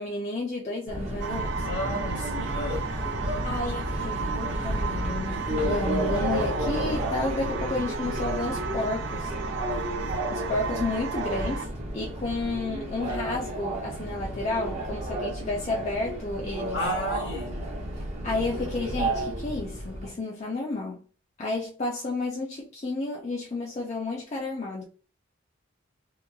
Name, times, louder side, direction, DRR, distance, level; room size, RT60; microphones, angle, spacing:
voice 1, 0.0-1.7 3.4-9.3 10.3-11.7 11.9-16.8 18.2-21.0 21.4-24.8, left 2 dB, 35° left, 0.5 m, -31 dB
Subway metro underground, 0.9-20.1, right 1 dB, 35° right, 0.7 m, -31 dB
sound 1, 1.2-11.7, right 6 dB, 65° right, 0.3 m, -35 dB
voice 2, 1.6-2.9 16.7-17.6, left 1 dB, 60° left, 1.0 m, -33 dB
2.9 x 2.3 x 2.2 m
head